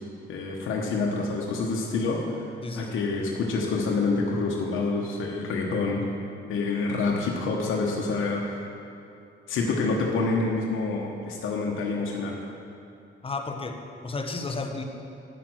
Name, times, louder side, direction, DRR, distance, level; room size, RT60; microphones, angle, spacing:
voice 1, 0.3-2.5 2.8-6.1 6.5-8.6 9.5-12.4, left 3 dB, 85° left, -1 dB, 1.2 m, -27 dB
voice 2, 2.6-3.0 13.2-14.8, left 3 dB, 30° left, 4 dB, 1.1 m, -33 dB
9.2 x 8.6 x 6.3 m, 2.7 s
cardioid pair, 90°, 20 cm